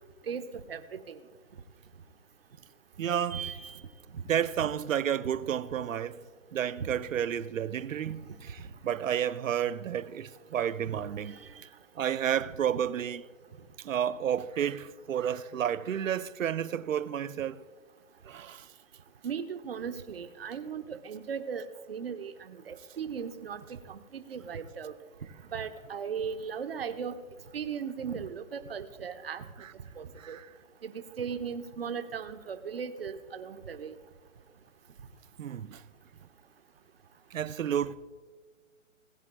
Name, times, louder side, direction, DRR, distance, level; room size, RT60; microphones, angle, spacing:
voice 1, 0.3-1.2 3.3-3.8 4.6-4.7 6.8-6.9 8.1-8.2 11.3-11.5 19.2-24.9 25.5-27.2 27.5-29.4 30.0-30.4 30.8-34.0, right 6 dB, 45° right, 0.9 m, -37 dB
voice 2, 3.0-3.5 4.2-6.2 6.5-11.4 12.0-13.2 13.8-17.6 18.3-18.7 30.2-30.5 35.4-35.8 37.3-38.0, right 9 dB, 70° right, 0.7 m, -31 dB
20.0 x 9.1 x 2.3 m
hypercardioid pair, 170°, 41 cm